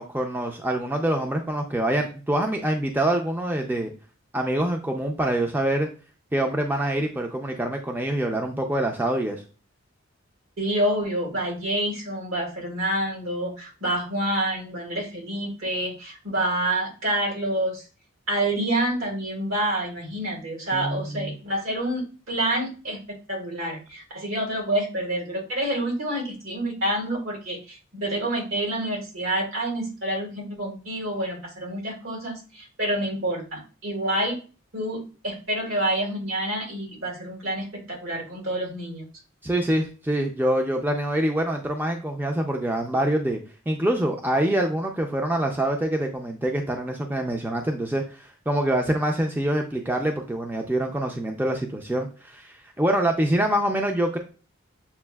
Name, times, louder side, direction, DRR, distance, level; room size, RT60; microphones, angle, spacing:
voice 1, 0.0-3.9 4.3-5.9 6.3-9.4 20.7-21.4 39.4-43.4 43.7-54.2, right 1 dB, 10° right, 3 dB, 0.4 m, -25 dB
voice 2, 10.6-17.9 18.3-34.4 34.7-39.1, right 1 dB, 75° right, -2 dB, 1.8 m, -28 dB
7.0 x 2.4 x 2.3 m, 0.35 s
head